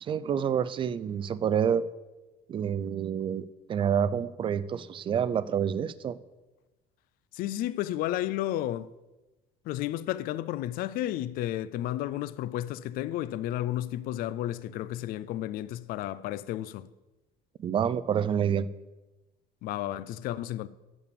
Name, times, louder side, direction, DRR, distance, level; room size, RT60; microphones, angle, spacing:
voice 1, 0.0-1.8 2.5-6.2 17.6-18.7, right 8 dB, 30° right, 0.4 m, -28 dB
voice 2, 7.3-8.9 9.6-16.9 19.6-20.7, left 13 dB, 55° left, 0.4 m, -32 dB
8.3 x 6.9 x 6.8 m
cardioid pair, 145°, 18 cm